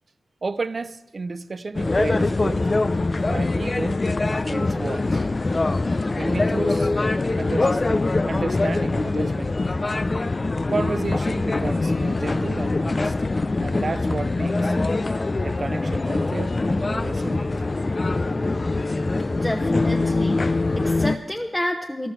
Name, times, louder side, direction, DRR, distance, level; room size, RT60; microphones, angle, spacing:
voice 1, 0.4-2.7 3.2-4.0 4.4-5.3 6.2-6.9 7.4-9.6 10.7-13.2 13.6-14.8 15.4-17.7 18.2-18.3, right 3 dB, 55° right, 0.5 m, -32 dB
sound 1, 1.7-21.2, left 2 dB, 45° left, 0.5 m, -23 dB
voice 2, 19.3-22.1, left 1 dB, 15° left, 1.1 m, -29 dB
14.0 x 11.5 x 6.1 m
cardioid pair, 45°, 0 cm